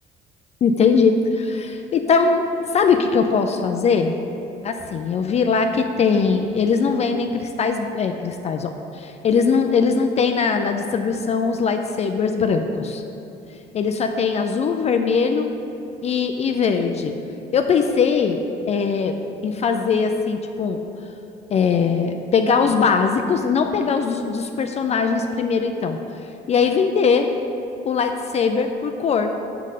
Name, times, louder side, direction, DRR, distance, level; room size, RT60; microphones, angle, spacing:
voice 1, 0.6-2.4 2.7-4.1 4.6-13.0 13.7-15.5 16.0-17.1 17.5-19.2 19.4-20.8 21.5-26.0 26.5-27.3 27.9-29.3, left 5 dB, 40° left, 6 dB, 0.4 m, -20 dB
5.4 x 5.1 x 5.6 m, 2.8 s
cardioid pair, 110°, 17 cm